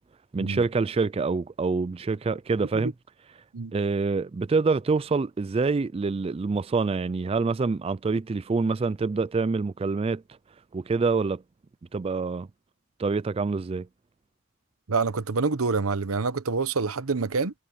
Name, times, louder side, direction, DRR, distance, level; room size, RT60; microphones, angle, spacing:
voice 1, 0.3-2.9 3.7-10.2 10.7-11.4 11.9-12.5 13.0-13.9, right 4 dB, 25° right, 0.3 m, -26 dB
voice 2, 14.9-17.5, right 4 dB, 85° right, 0.9 m, -26 dB
head